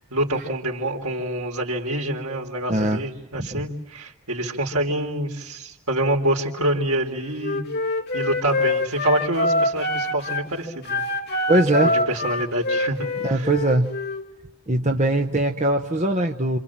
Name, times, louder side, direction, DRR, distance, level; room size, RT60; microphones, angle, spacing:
voice 1, 0.0-7.6 8.1-11.0 11.8-13.5, right 1 dB, 80° right, 1 dB, 3.8 m, -26 dB
voice 2, 2.7-3.0 3.4-3.7 11.5-11.9 13.2-13.9 14.7-16.6, right 1 dB, 30° right, 3 dB, 1.0 m, -21 dB
Wind instrument woodwind instrument, 7.4-10.5 10.8-14.2, left 2 dB, 50° left, 3.0 m, -25 dB
28.0 x 27.0 x 7.4 m, 0.82 s
head